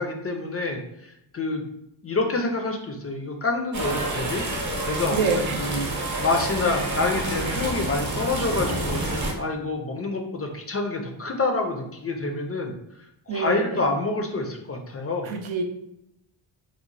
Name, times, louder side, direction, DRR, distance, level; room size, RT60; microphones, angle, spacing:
voice 1, 0.0-1.6 2.0-5.9 6.2-12.7 13.3-15.3, left 3 dB, 30° left, 3 dB, 0.4 m, -27 dB
sound 1, 3.7-9.3, right 2 dB, 35° right, 0.8 m, -28 dB
voice 2, 5.1-5.9 13.3-13.8 15.2-15.6, right 5 dB, 75° right, 4 dB, 0.6 m, -27 dB
2.9 x 2.1 x 2.5 m, 0.82 s
cardioid pair, 65°, 48 cm